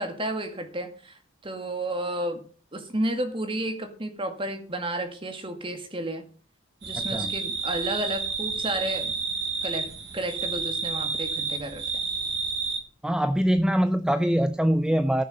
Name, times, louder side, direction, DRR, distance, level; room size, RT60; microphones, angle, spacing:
voice 1, 0.0-2.4 2.7-6.3 6.8-9.2 9.6-11.8, right 1 dB, 25° right, 2.1 m, -32 dB
sound 1, 6.8-12.8, right 5 dB, 60° right, 2.7 m, -30 dB
voice 2, 6.9-7.3 13.0-15.2, equal, 5° right, 0.5 m, -23 dB
14.5 x 6.9 x 6.6 m
head